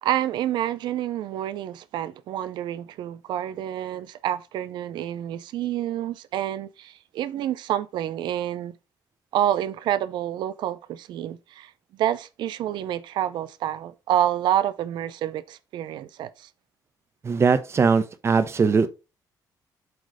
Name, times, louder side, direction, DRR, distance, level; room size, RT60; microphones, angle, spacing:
voice 1, 0.0-8.7 9.3-11.7 12.0-16.5, right 11 dB, 85° right, 0.5 m, -28 dB
voice 2, 17.2-18.9, right 5 dB, 35° right, 0.8 m, -20 dB
7.9 x 3.1 x 4.9 m
cardioid pair, 120°, 8 cm